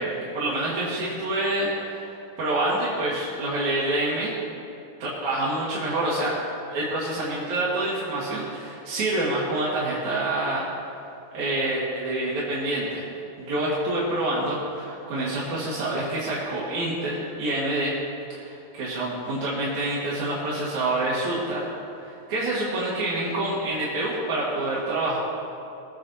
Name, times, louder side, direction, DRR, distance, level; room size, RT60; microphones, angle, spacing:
voice 1, 0.0-4.3 5.0-6.3 6.7-10.7 11.3-13.1 13.4-17.9 18.3-21.6 22.0-25.2, right 1 dB, 55° right, -7 dB, 3.0 m, -27 dB
20.0 x 8.5 x 4.1 m, 2.7 s
omnidirectional pair, 4.3 m